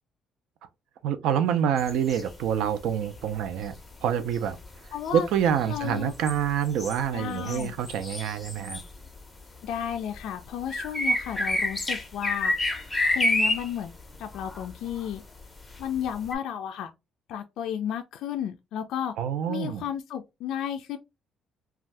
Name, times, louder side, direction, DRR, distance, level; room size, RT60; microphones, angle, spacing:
voice 1, 1.0-3.7 4.0-4.6 5.1-8.8 19.2-19.8, right 9 dB, 75° right, 0.4 m, -27 dB
sound 1, 1.8-2.8 3.0-9.4 9.6-16.4, left 2 dB, 10° left, 0.5 m, -29 dB
voice 2, 4.9-5.3 5.7-6.1 7.1-7.7 9.6-12.7 13.1-13.9 14.2-15.2 15.8-16.9 17.3-19.1 19.5-21.0, left 9 dB, 70° left, 0.3 m, -33 dB
2.6 x 2.3 x 3.2 m
cardioid pair, 160°, 0 cm